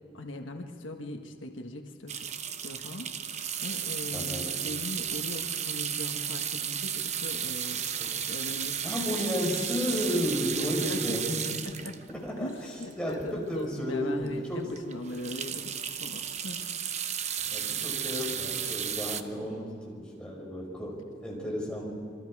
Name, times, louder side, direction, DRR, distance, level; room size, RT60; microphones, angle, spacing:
voice 1, 0.1-7.8 8.3-9.2 10.9-11.3 11.6-11.9 12.4-15.7 16.0-16.7, left 1 dB, 90° left, 4 dB, 1.4 m, -40 dB
sound 1, 2.1-13.4 13.9-14.0 14.2-14.4 14.7-19.2, right 8 dB, 35° right, 0.8 m, -34 dB
voice 2, 4.1-4.5 8.0-8.2 8.8-11.5 12.1-12.7 13.0-14.7 17.5-22.0, equal, 5° left, -3 dB, 4.9 m, -33 dB
26.5 x 24.0 x 4.8 m, 2.2 s
head